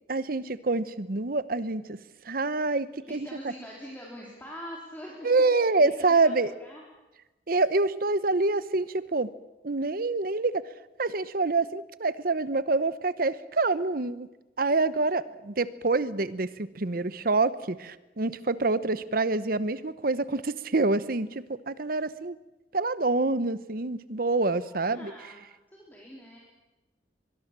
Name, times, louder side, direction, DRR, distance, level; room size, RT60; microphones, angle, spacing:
voice 1, 0.1-2.0 2.2-3.3 5.2-6.5 7.5-9.3 9.6-10.6 11.0-14.3 14.6-22.4 22.7-25.1, right 3 dB, 55° right, 16 dB, 0.9 m, -26 dB
voice 2, 3.1-5.3 5.6-6.8 24.5-25.4 25.7-26.4, equal, 10° left, -3 dB, 3.9 m, -44 dB
23.0 x 21.5 x 7.5 m, 1.1 s
head